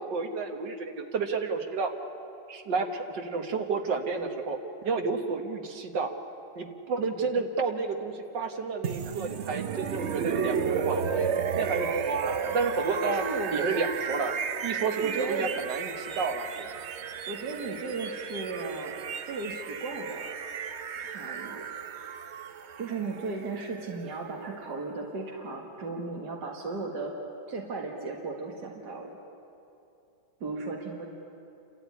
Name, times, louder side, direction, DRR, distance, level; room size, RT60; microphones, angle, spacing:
voice 1, 0.1-1.9 2.5-4.6 4.8-6.1 6.6-11.3 11.6-13.2 13.5-14.3 14.6-16.7, right 4 dB, 85° right, 5 dB, 2.2 m, -31 dB
sound 1, 8.8-24.7, right 7 dB, 55° right, 0.8 m, -33 dB
voice 2, 13.0-13.7 15.0-15.5 17.3-19.0 19.3-20.4 21.0-21.6 22.8-27.1 27.5-29.2 30.4-31.1, right 3 dB, 70° right, 0 dB, 2.4 m, -35 dB
28.5 x 13.0 x 9.6 m, 2.7 s
omnidirectional pair, 1.9 m